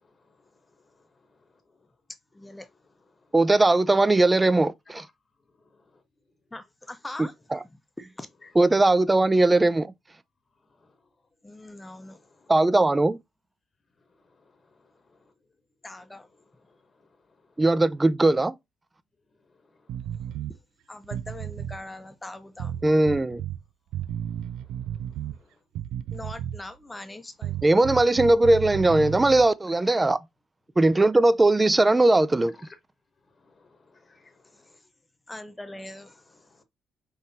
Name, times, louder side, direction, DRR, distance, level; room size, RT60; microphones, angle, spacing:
voice 1, 2.3-2.7 6.5-7.3 7.6-8.3 11.4-12.2 15.8-16.3 20.9-22.7 26.1-27.8 34.5-34.8 35.3-36.4, left 1 dB, 15° left, 0.7 m, -42 dB
voice 2, 3.3-5.0 7.2-7.3 8.6-9.9 12.5-13.2 17.6-18.5 22.8-23.4 27.6-30.2 30.8-32.5, right 2 dB, 20° right, 0.4 m, -19 dB
sound 1, 19.9-20.6 21.0-21.8 22.6-23.6 23.9-25.4 25.7-26.7 27.4-29.5, right 11 dB, 90° right, 0.3 m, -33 dB
voice 3, 33.5-34.8 36.5-36.6, left 3 dB, 30° left, 1.1 m, -57 dB
5.4 x 3.1 x 2.7 m
cardioid pair, 90°, 0 cm